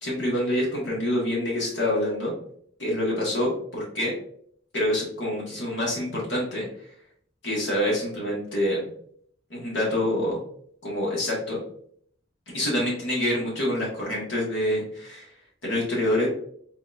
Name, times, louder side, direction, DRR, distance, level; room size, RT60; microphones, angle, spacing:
voice 1, 0.0-2.3 2.8-4.1 4.7-6.7 7.4-8.8 9.5-10.4 10.8-11.6 12.5-15.3 15.6-16.3, left 1 dB, 80° left, -4 dB, 1.7 m, -26 dB
4.2 x 3.9 x 2.6 m, 0.63 s
head